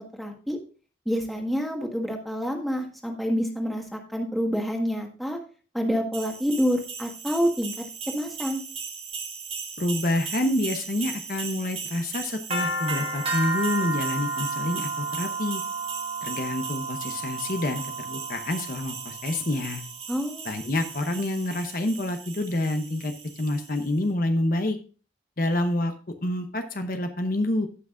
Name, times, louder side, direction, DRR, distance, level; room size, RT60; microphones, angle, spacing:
voice 1, 0.1-0.6 1.0-5.4 5.7-7.7 8.0-8.6 20.1-20.5, equal, ahead, 1 dB, 1.5 m, -27 dB
sound 1, 6.1-23.8, right 4 dB, 35° right, 1.7 m, -34 dB
voice 2, 9.8-15.6 16.2-19.8 20.4-23.1 23.4-24.8 25.4-25.9 26.2-27.7, left 1 dB, 50° left, 6 dB, 0.8 m, -27 dB
17.0 x 5.9 x 2.5 m, 0.38 s
head